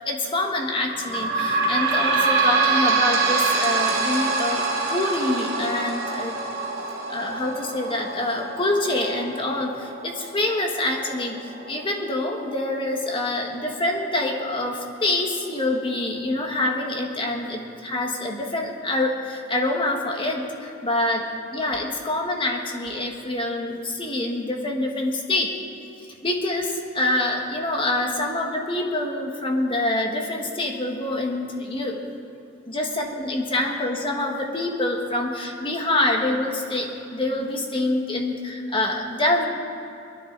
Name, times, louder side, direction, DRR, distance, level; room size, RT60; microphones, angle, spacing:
voice 1, 0.0-6.4 7.1-25.5 26.2-32.1 32.6-39.5, left 2 dB, 25° left, 1 dB, 1.7 m, -26 dB
sound 1, 0.9-14.0 14.6-14.7 15.0-15.1 15.9-16.0, right 3 dB, 50° right, 2.5 m, -26 dB
21.5 x 13.0 x 4.1 m, 2.9 s
head